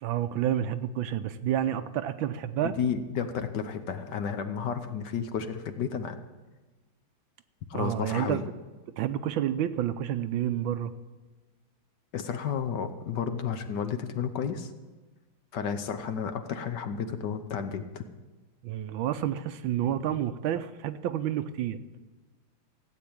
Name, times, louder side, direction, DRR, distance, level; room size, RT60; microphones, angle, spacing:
voice 1, 0.0-2.7 7.7-8.4 9.0-10.9 18.6-21.8, right 11 dB, 75° right, 11 dB, 1.4 m, -29 dB
voice 2, 2.6-6.2 7.7-8.5 12.1-14.7 15.5-18.0, left 7 dB, 60° left, 8 dB, 1.3 m, -32 dB
15.5 x 8.4 x 8.8 m, 1.2 s
omnidirectional pair, 2.3 m